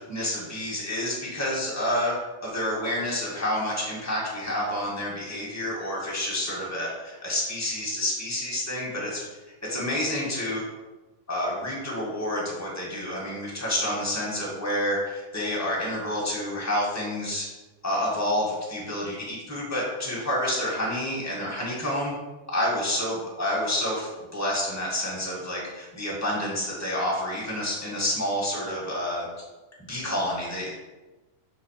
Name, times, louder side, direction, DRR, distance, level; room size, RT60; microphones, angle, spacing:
voice 1, 0.0-2.1 2.4-9.3 9.6-10.6 11.3-17.5 17.8-22.1 22.5-29.3 29.9-30.7, left 1 dB, 10° left, -5 dB, 1.2 m, -29 dB
6.7 x 3.9 x 5.8 m, 1.1 s
omnidirectional pair, 3.4 m